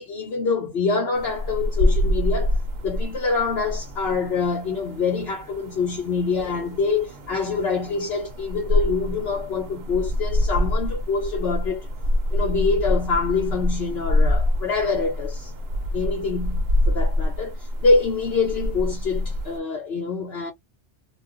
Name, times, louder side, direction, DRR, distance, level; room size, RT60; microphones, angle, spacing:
voice 1, 0.0-11.9 12.3-15.5 15.9-20.5, left 4 dB, 65° left, 0.9 m, -25 dB
sound 1, 1.1-19.6, left 1 dB, 60° right, 0.9 m, -26 dB
2.4 x 2.3 x 3.6 m
omnidirectional pair, 1.2 m